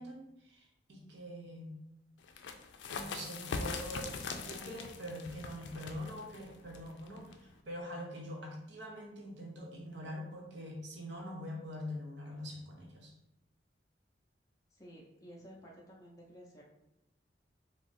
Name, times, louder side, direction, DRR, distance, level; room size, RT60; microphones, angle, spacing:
voice 1, 0.0-1.7 2.9-13.1, equal, 70° right, 0 dB, 0.8 m, -44 dB
sound 1, 2.2-7.6, left 4 dB, 80° left, 0.4 m, -42 dB
voice 2, 14.7-16.6, equal, 20° left, -3 dB, 0.5 m, -53 dB
3.6 x 2.0 x 4.0 m, 0.87 s
head